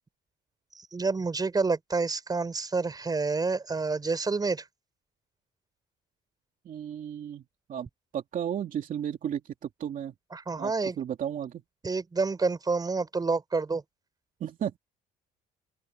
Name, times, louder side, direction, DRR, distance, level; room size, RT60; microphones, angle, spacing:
voice 1, 0.8-4.6 10.3-11.0 11.8-13.8, right 4 dB, 25° right, 5.8 m, -28 dB
voice 2, 6.6-7.4 7.7-7.9 8.1-10.1 10.6-11.6 14.4-14.8, right 9 dB, 50° right, 2.7 m, -34 dB
open air
cardioid pair, 110°, 17 cm